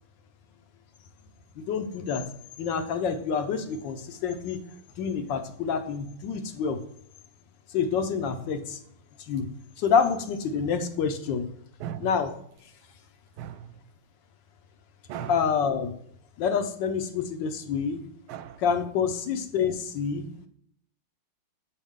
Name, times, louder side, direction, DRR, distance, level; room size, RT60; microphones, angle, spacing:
voice 1, 1.6-2.2 2.6-4.6 5.0-6.8 7.7-8.8 9.3-9.5 9.8-11.5 12.0-12.3 15.3-15.9 16.4-18.0 18.6-20.2, left 6 dB, 70° left, 1.3 m, -27 dB
voice 2, 11.8-12.1 13.4-13.7 15.1-15.4 18.3-18.6 19.3-19.4 20.3-20.5, right 10 dB, 90° right, 1.5 m, -37 dB
7.1 x 5.3 x 3.6 m
omnidirectional pair, 2.3 m